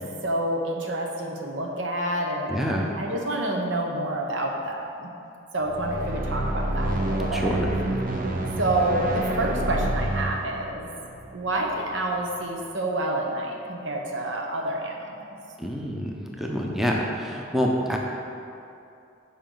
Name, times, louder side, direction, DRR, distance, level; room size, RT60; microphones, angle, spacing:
voice 1, 0.0-5.1 5.5-7.5 8.6-10.9 11.3-15.3, right 1 dB, 80° right, 1 dB, 1.0 m, -28 dB
voice 2, 2.5-2.9 7.3-7.7 15.6-18.0, equal, ahead, -1 dB, 0.6 m, -26 dB
sound 1, 5.7-12.0, right 1 dB, 45° right, 0.7 m, -28 dB
9.7 x 5.2 x 3.9 m, 2.7 s
head